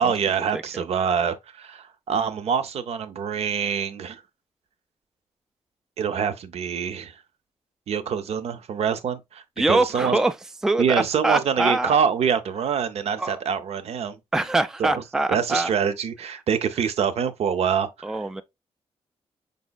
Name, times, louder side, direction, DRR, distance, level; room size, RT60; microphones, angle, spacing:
voice 1, 0.0-4.2 6.0-7.1 7.9-10.2 10.8-14.2 14.8-15.0 15.3-18.2, right 7 dB, 70° right, 0.6 m, -25 dB
voice 2, 0.5-0.8 9.6-10.3 10.6-11.9 13.2-13.4 14.3-15.7 18.0-18.4, right 2 dB, 5° right, 0.3 m, -24 dB
5.3 x 4.0 x 2.2 m
wide cardioid pair, 150°, 11 cm